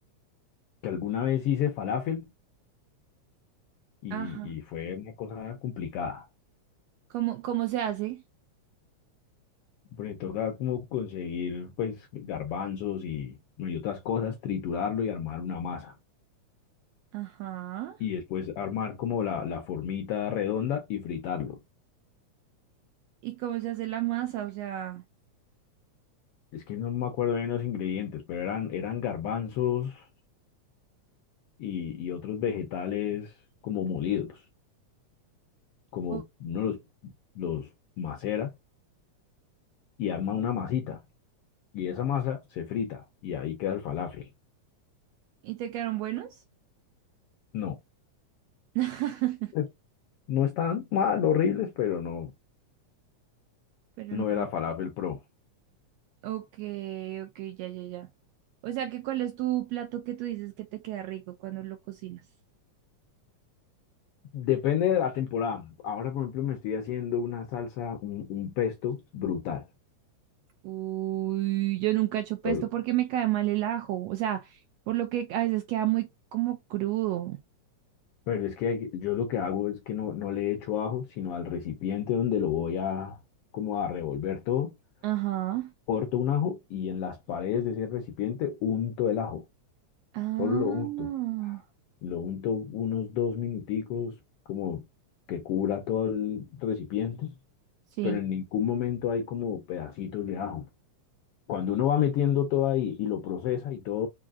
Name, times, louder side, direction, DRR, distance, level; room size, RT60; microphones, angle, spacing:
voice 1, 0.8-2.3 4.0-6.3 10.0-15.9 18.0-21.6 26.5-30.1 31.6-33.3 33.6-34.4 35.9-37.7 38.0-38.5 40.0-41.0 41.7-44.3 47.5-47.8 49.5-49.6 50.3-52.3 54.1-55.2 64.3-69.6 72.4-72.7 78.3-83.2 83.5-84.7 85.9-89.4 90.4-91.1 91.4-91.6 92.0-94.2 94.5-94.8 95.3-97.3 98.0-100.7 101.5-104.1, left 8 dB, 80° left, 1.3 m, -30 dB
voice 2, 4.1-4.5 7.1-8.2 17.1-18.0 23.2-25.0 36.1-36.2 45.4-46.4 48.7-49.5 54.0-54.5 56.2-58.1 58.6-62.2 70.6-74.6 74.9-77.4 85.0-85.7 90.1-91.6 98.0-98.2, right 14 dB, 80° right, 1.5 m, -31 dB
4.9 x 2.6 x 2.4 m
omnidirectional pair, 3.4 m